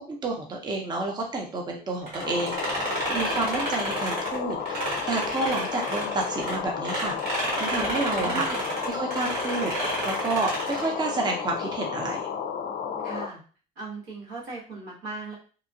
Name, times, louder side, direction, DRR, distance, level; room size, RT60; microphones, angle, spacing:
voice 1, 0.1-4.8 5.1-7.1 7.6-8.5 8.8-9.7 10.0-12.2, right 3 dB, 25° right, 0 dB, 0.6 m, -30 dB
sound 1, 2.1-6.6 6.8-10.9, right 1 dB, 65° right, 1.4 m, -31 dB
sound 2, 2.2-13.3, left 7 dB, 55° left, 0.4 m, -33 dB
voice 2, 8.2-8.7 13.0-13.4 13.8-15.3, right 3 dB, 90° right, -4 dB, 1.3 m, -37 dB
2.8 x 2.3 x 2.6 m, 0.39 s
cardioid pair, 110°, 17 cm